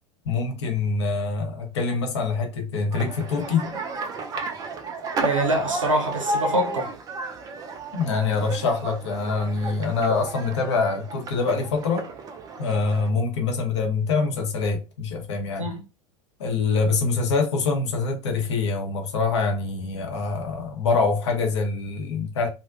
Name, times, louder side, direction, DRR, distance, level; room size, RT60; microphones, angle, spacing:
voice 1, 0.2-3.7 7.9-12.1 12.6-15.7 16.4-22.5, left 4 dB, 60° left, 0.7 m, -25 dB
sound 1, 2.9-13.1, right 3 dB, 20° right, 0.4 m, -32 dB
voice 2, 5.2-6.9 15.6-15.8, right 1 dB, 80° right, 0.8 m, -25 dB
2.4 x 2.1 x 2.4 m
figure-of-eight pair, 80°, 16 cm